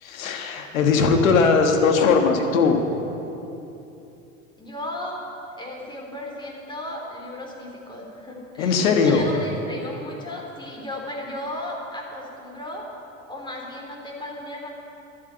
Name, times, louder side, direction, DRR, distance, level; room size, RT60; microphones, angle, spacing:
voice 1, 0.0-2.8 8.6-9.3, left 5 dB, 80° left, 5 dB, 1.6 m, -19 dB
voice 2, 4.6-5.2 5.6-12.9 13.3-14.7, left 1 dB, 10° left, -1 dB, 3.4 m, -35 dB
12.0 x 8.3 x 9.0 m, 2.8 s
hypercardioid pair, 90°, 40 cm